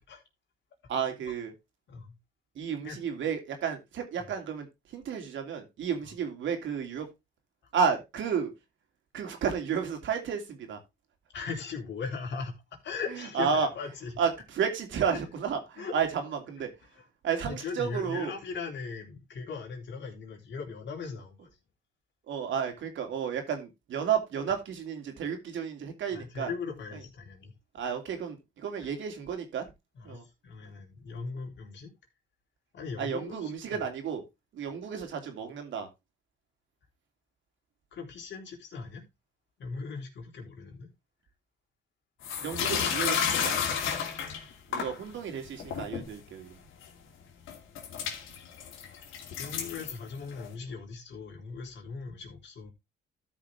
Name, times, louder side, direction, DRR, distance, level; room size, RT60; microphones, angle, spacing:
voice 1, 0.9-1.5 2.5-7.1 7.7-8.5 9.1-10.8 13.1-13.7 14.2-16.7 17.2-18.3 22.3-26.5 26.9-27.0 27.7-29.6 30.0-30.2 33.0-34.2 34.5-35.9 42.4-43.8 44.7-46.6, right 7 dB, 75° right, 2.7 m, -32 dB
voice 2, 11.3-12.6 12.8-14.1 15.8-15.9 17.5-21.5 26.1-27.5 28.8-28.9 30.0-31.9 32.7-33.5 37.9-39.0 39.6-40.9 44.8-44.9 49.4-52.7, left 5 dB, 65° left, 3.5 m, -39 dB
sound 1, 42.2-45.0 45.5-46.1 46.8-46.9 47.5-50.5, left 7 dB, 85° left, 2.5 m, -31 dB
13.0 x 5.7 x 3.5 m
cardioid pair, 90°, 20 cm